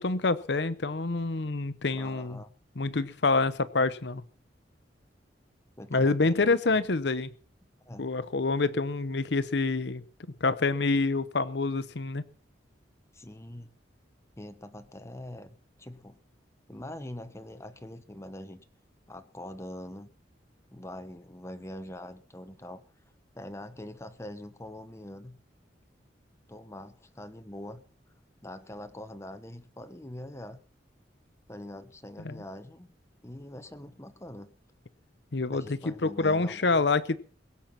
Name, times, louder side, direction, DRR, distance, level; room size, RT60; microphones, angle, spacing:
voice 1, 0.0-2.4 2.8-4.2 5.9-7.3 8.0-10.0 10.4-12.2 32.2-32.4 35.3-37.2, left 3 dB, 65° left, 14 dB, 0.8 m, -27 dB
voice 2, 1.9-2.5 5.8-6.6 7.9-8.2 13.1-13.7 14.4-16.2 16.7-18.6 19.1-20.1 20.7-22.8 23.3-25.4 26.5-27.8 28.4-30.6 31.5-32.9 33.2-34.5 35.5-36.8, left 1 dB, 15° left, 9 dB, 1.1 m, -43 dB
22.0 x 7.4 x 5.8 m, 0.43 s
head